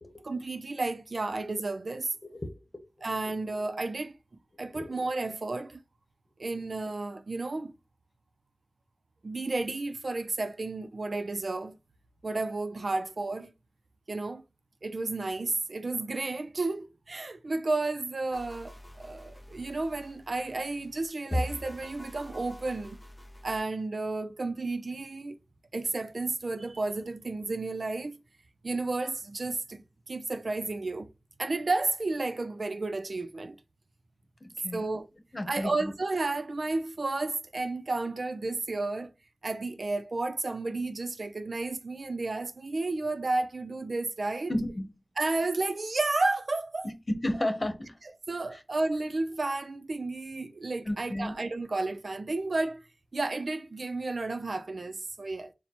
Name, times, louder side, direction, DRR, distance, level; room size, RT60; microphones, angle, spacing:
voice 1, 0.2-2.1 3.0-4.2 4.6-5.8 6.4-7.7 9.2-11.8 12.2-13.5 14.1-14.4 14.8-23.0 23.4-25.4 25.7-28.2 28.6-31.1 31.4-33.6 34.7-35.1 35.5-39.1 39.4-44.5 45.2-46.9 47.3-47.4 48.0-52.8 53.1-55.5, right 3 dB, 85° right, 0.5 m, -32 dB
sound 1, 18.3-23.6, left 1 dB, 25° left, 1.0 m, -40 dB
voice 2, 34.4-34.9 35.3-35.9 44.5-44.9 47.1-47.9 50.8-51.3, left 1 dB, 55° left, 1.1 m, -32 dB
4.3 x 2.2 x 4.2 m
wide cardioid pair, 60°, 0 cm